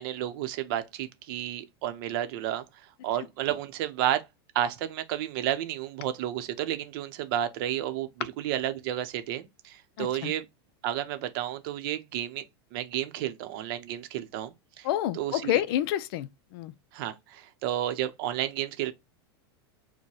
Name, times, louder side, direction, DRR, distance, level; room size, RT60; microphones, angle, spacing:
voice 1, 0.0-4.2 4.5-10.4 10.8-12.4 12.7-14.9 15.1-15.6 16.9-18.9, right 12 dB, 55° right, 0.7 m, -31 dB
voice 2, 10.0-10.3 14.8-16.7, left 12 dB, 60° left, 0.4 m, -29 dB
4.6 x 2.2 x 2.9 m
supercardioid pair, 140°, 14 cm